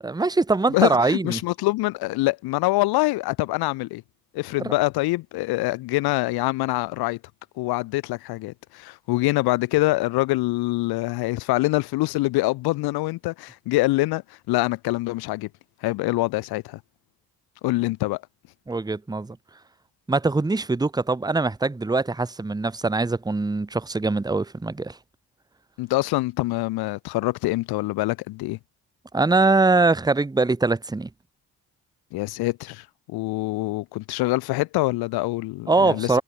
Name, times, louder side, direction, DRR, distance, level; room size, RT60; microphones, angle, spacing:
voice 1, 0.0-1.4 4.6-4.7 18.7-19.4 20.1-25.0 29.1-31.1 35.7-36.2, right 3 dB, 10° right, 0.8 m, -22 dB
voice 2, 0.7-4.0 4.3-7.2 7.6-15.5 15.8-16.8 17.6-18.2 25.8-28.6 32.1-36.2, left 20 dB, 80° left, 0.7 m, -25 dB
supercardioid pair, 65°, 37 cm